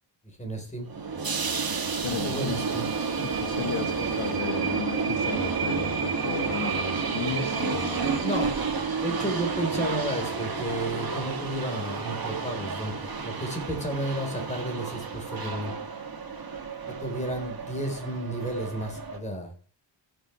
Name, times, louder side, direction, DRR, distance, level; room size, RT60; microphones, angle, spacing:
voice 1, 0.4-0.9 2.3-2.9 8.2-8.5 9.0-15.7 16.9-19.5, right 1 dB, 15° left, 3 dB, 4.2 m, -32 dB
sound 1, 0.9-19.2, right 5 dB, 50° right, 2.5 m, -30 dB
voice 2, 2.0-2.7 3.2-8.2 9.1-9.3, left 6 dB, 70° left, 5 dB, 1.8 m, -34 dB
16.5 x 7.7 x 3.3 m, 0.38 s
wide cardioid pair, 115°, 46 cm